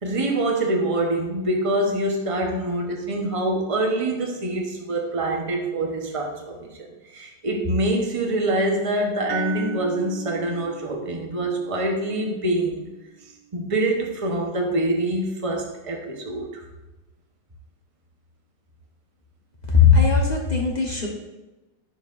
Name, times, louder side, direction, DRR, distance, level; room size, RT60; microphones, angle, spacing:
voice 1, 0.0-6.9 7.1-12.9 13.5-16.6, right 1 dB, 55° right, 1 dB, 0.3 m, -25 dB
sound 1, 9.3-13.4, right 12 dB, 90° right, 1.6 m, -37 dB
voice 2, 19.7-21.1, left 6 dB, 30° left, -1 dB, 0.8 m, -18 dB
10.0 x 6.8 x 2.6 m, 1.1 s
omnidirectional pair, 2.4 m